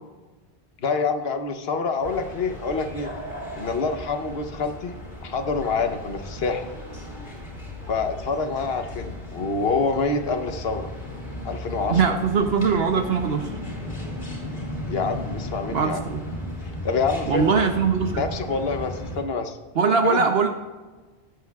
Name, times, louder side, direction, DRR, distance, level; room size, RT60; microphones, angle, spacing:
voice 1, 0.8-3.1 3.6-6.7 7.9-10.9 11.4-12.1 14.9-16.0 16.6-17.6 18.2-19.6 20.0-20.3, left 4 dB, 70° left, 7 dB, 1.2 m, -26 dB
sound 1, 2.0-19.2, left 1 dB, 45° left, 3.5 m, -36 dB
voice 2, 11.9-13.5 15.7-16.3 17.3-18.2 19.8-20.5, right 5 dB, 75° right, 5 dB, 1.0 m, -21 dB
18.5 x 8.1 x 2.4 m, 1.3 s
omnidirectional pair, 1.1 m